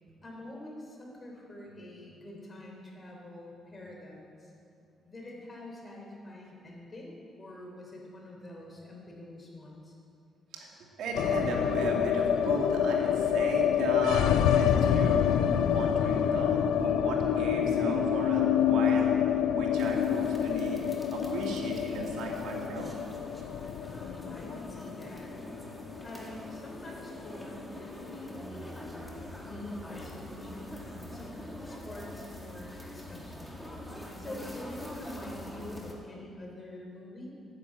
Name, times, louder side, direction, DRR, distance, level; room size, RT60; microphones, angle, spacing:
voice 1, 0.2-4.5 5.0-9.9 23.9-25.3 26.0-29.0 29.4-33.5 34.2-37.3, left 1 dB, 30° left, -1 dB, 3.6 m, -45 dB
voice 2, 11.0-19.2 19.5-22.9, right 3 dB, 75° right, -1 dB, 2.4 m, -35 dB
sound 1, 11.1-27.3 27.5-27.6 27.9-28.6, left 9 dB, 80° left, 0.5 m, -27 dB
sound 2, 19.7-35.9, left 1 dB, 5° left, 2.1 m, -44 dB
10.0 x 9.8 x 7.5 m, 2.4 s
cardioid pair, 90°, 0 cm